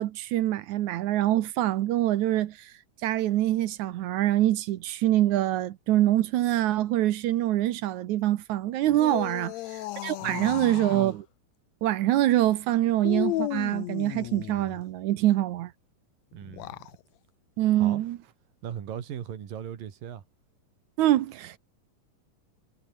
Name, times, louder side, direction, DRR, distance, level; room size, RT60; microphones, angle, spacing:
voice 1, 0.0-2.7 3.0-11.3 11.8-15.7 17.6-18.2 21.0-21.6, right 14 dB, 70° right, 2.1 m, -25 dB
sound 1, 8.9-11.1 13.0-14.8 16.4-16.9, left 16 dB, 80° left, 1.6 m, -34 dB
voice 2, 10.2-10.7 16.3-16.7 17.7-18.0 18.6-20.2, right 9 dB, 85° right, 4.0 m, -38 dB
omnidirectional pair, 3.9 m